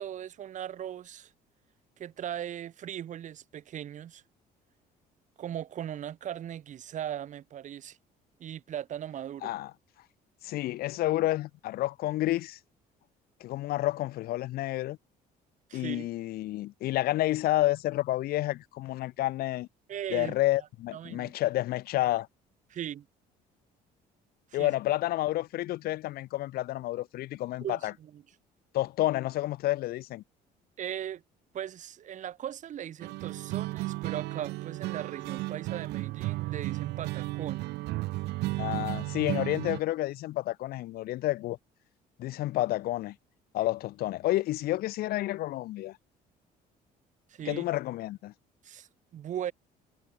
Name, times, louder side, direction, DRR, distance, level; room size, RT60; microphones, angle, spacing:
voice 1, 0.0-1.3 2.0-4.2 5.4-8.0 8.4-9.5 15.7-16.1 19.9-20.3 20.9-21.3 22.7-23.1 24.6-24.7 27.6-28.2 30.8-31.2 31.5-37.7 47.3-47.7 48.6-49.5, right 10 dB, 45° right, 0.9 m, -38 dB
voice 2, 10.4-12.6 13.4-15.0 15.7-19.7 20.1-22.3 24.5-27.9 28.7-30.2 38.6-41.6 42.2-43.2 43.5-46.0 47.4-48.3, left 16 dB, 65° left, 0.4 m, -30 dB
sound 1, 33.0-39.8, right 19 dB, 80° right, 0.7 m, -34 dB
cardioid pair, 110°, 17 cm